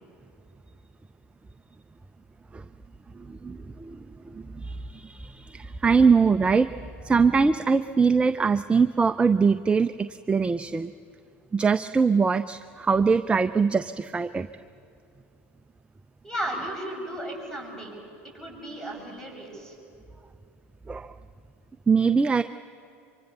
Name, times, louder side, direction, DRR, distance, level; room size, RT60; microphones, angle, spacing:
voice 1, 3.2-4.0 4.2-10.9 11.5-14.5 20.9-21.1 21.9-22.4, right 5 dB, 15° right, 10 dB, 0.5 m, -23 dB
voice 2, 16.2-17.9 18.3-19.7, right 1 dB, 10° left, 0 dB, 7.8 m, -34 dB
25.0 x 24.0 x 6.9 m, 2.6 s
hypercardioid pair, 85°, 7 cm